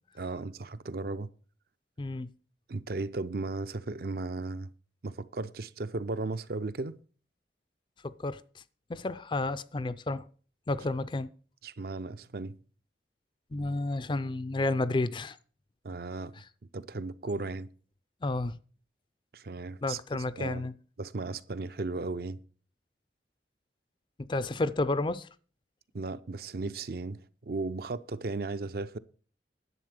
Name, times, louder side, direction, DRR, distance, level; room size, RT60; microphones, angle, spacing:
voice 1, 0.2-1.3 2.7-4.7 5.0-7.0 11.6-12.6 15.8-16.3 16.7-17.7 19.3-20.0 20.4-20.7 21.0-22.4 25.9-29.0, right 3 dB, 55° right, 0.6 m, -35 dB
voice 2, 2.0-2.3 8.0-8.6 8.9-10.3 10.7-11.3 13.5-15.4 17.4-17.5 18.2-18.6 19.8-20.7 24.2-25.3, left 2 dB, 25° left, 0.4 m, -31 dB
11.0 x 7.8 x 6.5 m
head